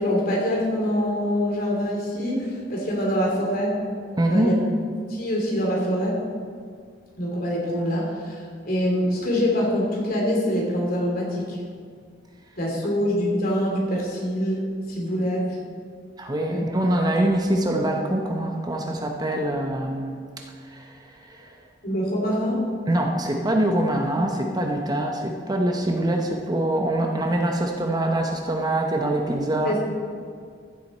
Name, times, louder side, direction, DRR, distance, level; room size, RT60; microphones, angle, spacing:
voice 1, 0.0-3.8 4.3-4.6 5.1-6.2 7.2-11.6 12.6-15.6 16.5-16.6 21.8-22.6 29.6-29.8, equal, 55° left, -3 dB, 3.0 m, -25 dB
voice 2, 4.2-4.6 16.2-20.2 20.7-21.5 22.9-29.8, right 1 dB, 20° right, 2 dB, 0.8 m, -24 dB
14.5 x 7.7 x 4.3 m, 2.1 s
head